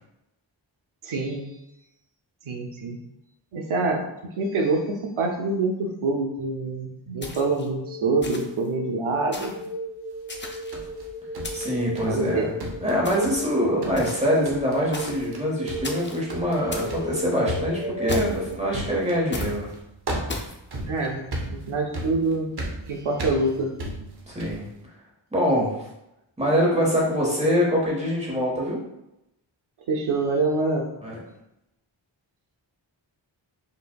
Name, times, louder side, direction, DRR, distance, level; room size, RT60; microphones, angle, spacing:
voice 1, 1.0-1.5 2.5-3.0 3.5-4.0 4.4-9.6 12.1-12.5 20.8-22.5 22.9-23.7 29.9-30.8, right 3 dB, 85° right, 1 dB, 0.7 m, -26 dB
sound 1, 7.2-7.7 8.2-8.7 9.3-9.7 10.3-10.9 11.4-11.9 13.0-13.4 14.0-14.4 14.9-15.3 15.8-16.2 16.7-17.0 18.1-18.5 19.3-19.6 20.3-20.6, left 2 dB, 25° left, 0.5 m, -36 dB
sound 2, 7.3-18.5, equal, 5° left, 0.9 m, -35 dB
sound 3, 10.3-12.3 12.6-13.5 13.8-14.2 14.4-14.8 15.1-15.4 15.7-24.7, right 1 dB, 55° right, 0.8 m, -35 dB
voice 2, 11.5-12.5 12.8-19.7 24.3-24.6 25.3-25.9 26.4-28.8 31.0-31.2, equal, 15° right, -4 dB, 1.3 m, -24 dB
5.0 x 2.5 x 2.3 m, 0.87 s
wide cardioid pair, 60°, 47 cm